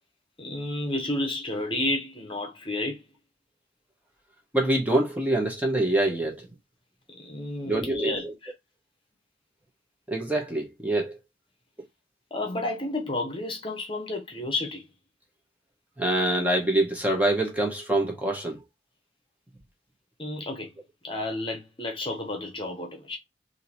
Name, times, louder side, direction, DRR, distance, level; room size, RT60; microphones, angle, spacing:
voice 1, 0.4-3.1 7.1-8.5 12.3-14.8 20.2-20.7 21.0-23.2, left 2 dB, 30° left, 1.0 m, -31 dB
voice 2, 4.5-6.5 7.6-8.3 10.1-11.2 16.0-18.6, right 1 dB, 10° right, 1.0 m, -25 dB
3.7 x 2.8 x 2.9 m
head